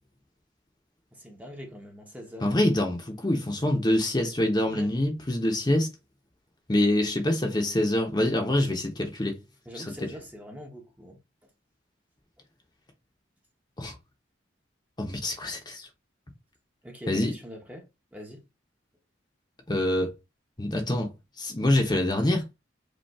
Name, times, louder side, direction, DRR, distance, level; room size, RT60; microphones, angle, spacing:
voice 1, 1.1-2.5 4.7-4.9 9.7-11.2 16.8-17.8 18.1-18.5, equal, 10° right, 0.9 m, -43 dB
voice 2, 2.4-5.9 6.7-9.4 9.7-10.1 13.8-13.9 15.0-15.9 17.1-17.3 19.7-20.1 20.6-21.1 21.4-22.4, left 1 dB, 20° left, 0.9 m, -25 dB
5.3 x 2.6 x 3.5 m
head